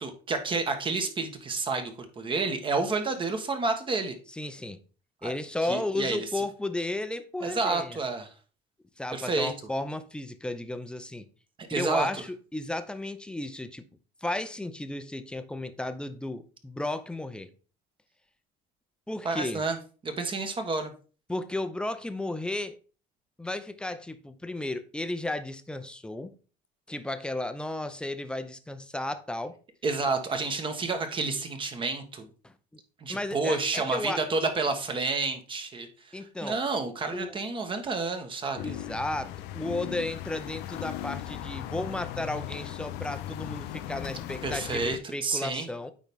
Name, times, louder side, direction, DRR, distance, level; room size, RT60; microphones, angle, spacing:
voice 1, 0.0-4.1 5.2-5.3 5.6-6.4 7.4-8.3 9.1-9.5 11.6-12.2 19.2-19.8 20.0-20.9 29.8-32.3 33.0-38.7 44.4-45.7, right 3 dB, 30° right, 1.3 m, -30 dB
voice 2, 4.3-4.8 5.2-8.0 9.0-11.3 11.7-13.8 14.2-17.5 19.1-19.6 21.3-22.8 23.4-26.3 26.9-29.6 32.4-32.5 33.1-34.2 36.1-36.6 37.1-37.4 38.6-45.9, left 2 dB, 5° left, 0.6 m, -34 dB
sound 1, 38.6-45.0, left 12 dB, 80° left, 0.6 m, -37 dB
9.0 x 4.0 x 3.6 m
cardioid pair, 120°, 17 cm